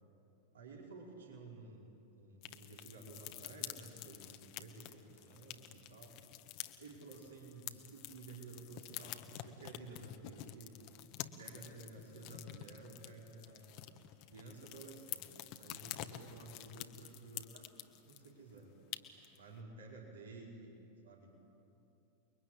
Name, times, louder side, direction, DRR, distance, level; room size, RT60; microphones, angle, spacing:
voice 1, 0.5-1.8 2.1-6.4 6.8-10.8 11.4-13.8 14.3-17.6 18.0-18.7 19.4-20.7 21.0-21.3, right 3 dB, 70° right, -2 dB, 4.9 m, -53 dB
sound 1, 2.4-18.3 18.6-18.7 18.9-19.4, left 14 dB, 45° left, 1.4 m, -49 dB
29.5 x 22.5 x 8.9 m, 2.8 s
figure-of-eight pair, 90°, 0 cm